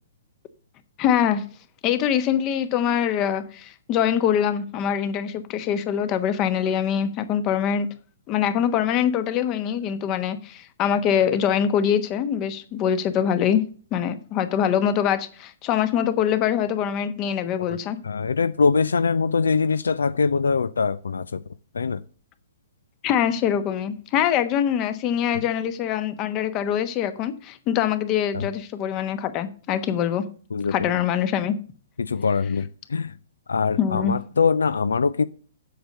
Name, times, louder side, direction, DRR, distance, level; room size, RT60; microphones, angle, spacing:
voice 1, 1.0-1.4 1.8-7.9 8.3-13.6 13.9-18.0 23.0-30.2 30.7-31.5 33.8-34.1, left 9 dB, 30° left, 1.1 m, -23 dB
voice 2, 18.0-21.4 21.7-22.0 25.3-25.4 28.3-28.5 30.5-30.9 32.0-33.2 33.5-35.2, left 5 dB, 80° left, 0.4 m, -23 dB
7.8 x 6.6 x 6.6 m
hypercardioid pair, 125°, 0 cm